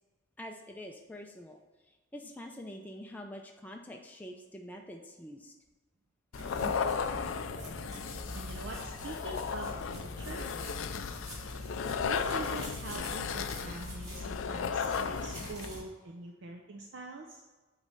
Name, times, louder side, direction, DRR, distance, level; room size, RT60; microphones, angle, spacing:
voice 1, 0.4-1.6 1.9-5.5, left 1 dB, 10° left, 2 dB, 0.4 m, -46 dB
sound 1, 6.3-15.7, left 6 dB, 70° left, 0.4 m, -35 dB
sound 2, 6.3-15.8, equal, 35° right, 2.2 m, -44 dB
voice 2, 8.3-10.4 11.9-17.4, right 2 dB, 60° right, 2 dB, 0.5 m, -44 dB
8.0 x 3.2 x 5.4 m, 1.3 s
head